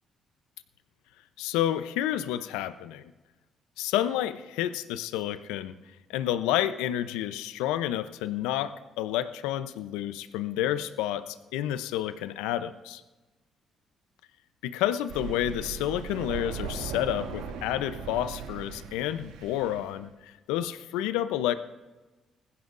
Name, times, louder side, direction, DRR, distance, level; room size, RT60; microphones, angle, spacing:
voice 1, 1.4-3.1 3.8-5.7 6.1-13.0 14.6-21.5, left 12 dB, 85° left, 12 dB, 0.7 m, -30 dB
Thunder, 15.1-19.9, right 6 dB, 85° right, 1.5 m, -38 dB
20.0 x 15.5 x 2.6 m, 1.2 s
supercardioid pair, 60°, 0 cm